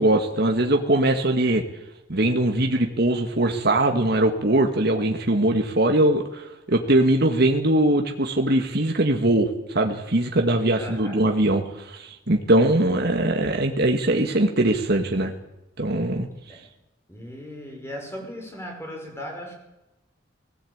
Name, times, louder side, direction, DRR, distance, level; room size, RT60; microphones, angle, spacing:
voice 1, 0.0-1.6 2.1-15.3 15.8-16.3, right 1 dB, 55° right, 3 dB, 1.8 m, -21 dB
voice 2, 10.8-11.2 16.5-16.6 17.1-19.6, equal, 15° left, 2 dB, 5.6 m, -37 dB
20.0 x 17.0 x 8.8 m, 0.97 s
head